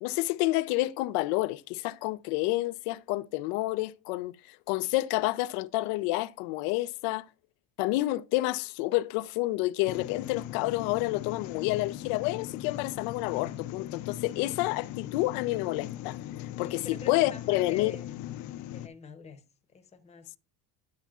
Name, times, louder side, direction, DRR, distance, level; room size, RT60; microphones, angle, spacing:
voice 1, 0.0-7.2 7.8-18.0, left 18 dB, 90° left, 0.6 m, -29 dB
sound 1, 9.8-18.9, left 13 dB, 45° left, 0.5 m, -39 dB
voice 2, 16.6-18.1 18.7-19.4 19.7-20.4, left 5 dB, 15° left, 0.8 m, -45 dB
10.5 x 8.2 x 2.4 m
cardioid pair, 165°, 40 cm